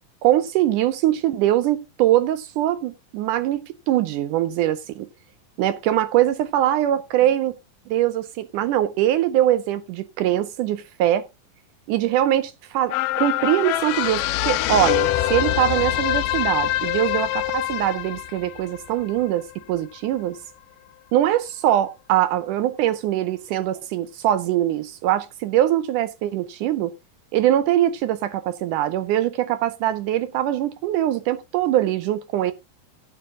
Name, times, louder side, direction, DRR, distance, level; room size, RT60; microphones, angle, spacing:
voice 1, 0.2-5.1 5.6-7.6 7.9-11.3 11.9-20.4 21.1-26.9 27.3-32.5, right 12 dB, 80° right, 1.9 m, -22 dB
sound 1, 12.9-19.5 20.0-20.1, left 15 dB, 75° left, 2.1 m, -24 dB
16.0 x 6.9 x 3.6 m
omnidirectional pair, 4.3 m